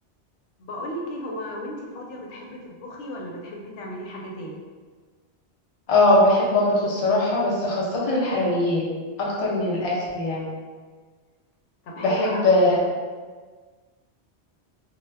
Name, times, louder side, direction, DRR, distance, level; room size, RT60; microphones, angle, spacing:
voice 1, 0.6-4.6 11.8-12.5, left 1 dB, 90° left, -2 dB, 0.9 m, -35 dB
voice 2, 5.9-8.9 9.2-10.4 12.0-12.8, left 2 dB, 40° left, -5 dB, 0.5 m, -21 dB
2.2 x 2.1 x 3.2 m, 1.5 s
omnidirectional pair, 1.2 m